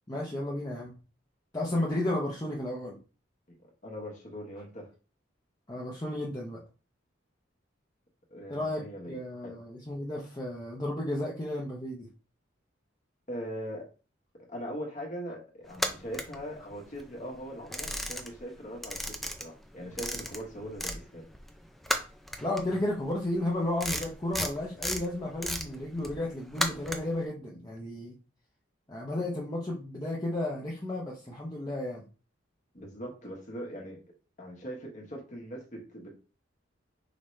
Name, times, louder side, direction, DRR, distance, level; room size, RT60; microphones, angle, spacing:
voice 1, 0.1-0.9 1.5-3.0 5.7-6.6 8.5-12.1 22.4-28.1 28.9-32.0, left 1 dB, 20° left, -4 dB, 0.8 m, -33 dB
voice 2, 3.8-4.9 8.3-9.2 9.4-9.5 13.3-13.9 14.5-21.2 32.7-34.0 34.4-36.1, equal, 40° left, 0 dB, 1.2 m, -41 dB
sound 1, 15.7-17.0 17.4-18.5 18.8-21.0 21.3-27.2, equal, ahead, 0.4 m, -34 dB
5.1 x 2.9 x 3.2 m, 0.34 s
head